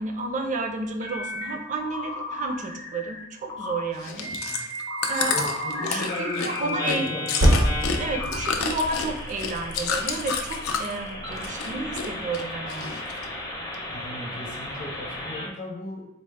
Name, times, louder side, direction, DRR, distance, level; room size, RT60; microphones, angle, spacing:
voice 1, 0.0-4.7 5.1-7.1 8.0-13.0, right 3 dB, 35° right, 4 dB, 0.4 m, -31 dB
sound 1, 1.0-1.5 1.8-3.2 3.5-3.8 4.2-15.5, left 1 dB, 15° left, 0.6 m, -34 dB
Chewing mastication, 3.9-11.0 11.3-12.1 12.3-13.2 13.7-13.8, left 5 dB, 90° left, 0.4 m, -30 dB
voice 2, 5.2-7.6 8.0-8.3 11.2-11.4 13.9-16.0, left 2 dB, 40° left, -2 dB, 0.8 m, -37 dB
Percussion, 7.4-12.2, equal, 75° right, 0.8 m, -27 dB
4.1 x 2.0 x 3.3 m, 0.95 s
head